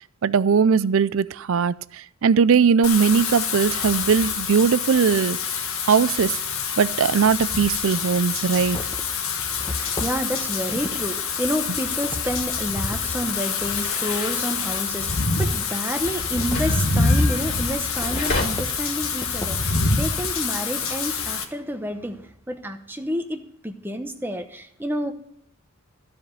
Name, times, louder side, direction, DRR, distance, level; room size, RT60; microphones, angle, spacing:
voice 1, 0.2-5.4 5.9-6.4 6.8-8.8 17.1-17.2, right 6 dB, 60° right, 18 dB, 0.4 m, -20 dB
Wind / Rain, 2.8-21.4, left 4 dB, 65° left, 1.3 m, -26 dB
sound 1, 6.2-6.3 7.3-7.4 7.9-13.1 13.6-14.8 15.2-21.4, left 1 dB, 15° left, 1.1 m, -38 dB
voice 2, 9.6-25.1, equal, 10° right, 6 dB, 0.9 m, -29 dB
sound 2, 12.6-18.4, left 2 dB, 40° left, 3.0 m, -35 dB
15.0 x 5.1 x 9.4 m, 0.71 s
head